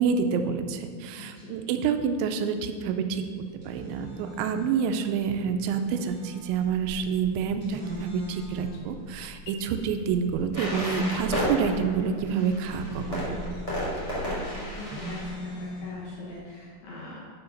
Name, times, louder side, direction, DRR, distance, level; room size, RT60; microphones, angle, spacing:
voice 1, 0.0-3.2 3.7-13.4, right 6 dB, 85° right, 7 dB, 3.0 m, -28 dB
voice 2, 1.2-1.6 13.8-17.2, left 2 dB, 70° left, -6 dB, 1.7 m, -42 dB
sound 1, 3.4-16.4, equal, 30° right, 1.6 m, -43 dB
sound 2, 6.0-15.3, left 1 dB, 85° left, 3.3 m, -43 dB
sound 3, 10.5-15.5, equal, 45° left, 0.4 m, -32 dB
9.7 x 4.8 x 5.2 m, 2.2 s
omnidirectional pair, 5.2 m